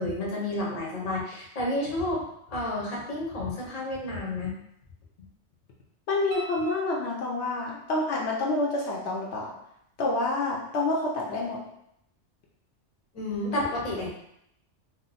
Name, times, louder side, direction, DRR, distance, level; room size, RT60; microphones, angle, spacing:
voice 1, 0.0-4.5 13.1-14.1, left 1 dB, 40° left, -3 dB, 0.7 m, -30 dB
voice 2, 6.1-9.5 10.0-11.6, left 2 dB, 70° left, -2 dB, 0.8 m, -28 dB
sound 1, 6.3-7.6 10.4-10.5, right 3 dB, 70° right, 0.8 m, -46 dB
2.7 x 2.0 x 3.9 m, 0.76 s
omnidirectional pair, 1.3 m